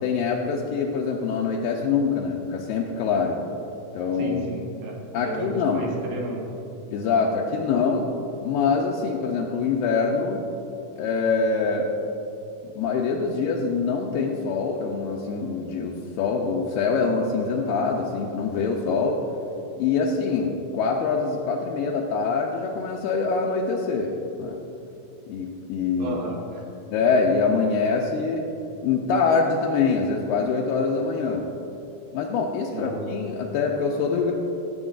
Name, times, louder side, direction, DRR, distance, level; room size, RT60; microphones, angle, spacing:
voice 1, 0.0-3.4 3.9-4.4 5.1-5.9 6.9-8.1 8.4-10.4 11.0-11.9 12.8-19.2 19.8-24.6 25.3-26.2 26.9-28.4 28.8-31.5 32.1-34.3, left 5 dB, 80° left, -2 dB, 2.2 m, -24 dB
voice 2, 4.2-6.5 26.0-26.6 32.7-32.9, right 2 dB, 85° right, -1 dB, 3.3 m, -33 dB
16.0 x 8.0 x 2.5 m, 2.8 s
omnidirectional pair, 4.3 m